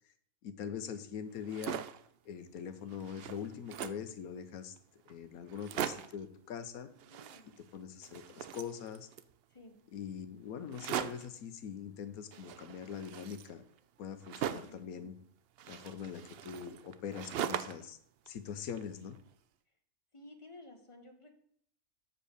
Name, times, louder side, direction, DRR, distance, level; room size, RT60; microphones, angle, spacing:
voice 1, 0.4-1.8 2.3-4.7 5.1-6.9 7.6-9.1 9.9-13.6 14.0-15.1 15.7-18.0 18.3-19.1, left 7 dB, 75° left, 11 dB, 1.3 m, -43 dB
sound 1, 1.3-2.1 2.6-2.7 2.9-4.1 4.8-4.9 5.1-5.2 5.5-6.2 7.0-7.8 8.0-9.3 10.7-11.4 12.3-14.8 15.6-17.9 18.3-19.2, right 9 dB, 70° right, 0.6 m, -41 dB
voice 2, 7.1-7.5 9.5-9.8 14.7-15.1 20.1-21.4, left 2 dB, 25° left, 5 dB, 1.1 m, -54 dB
7.4 x 5.3 x 6.5 m, 0.65 s
omnidirectional pair, 1.5 m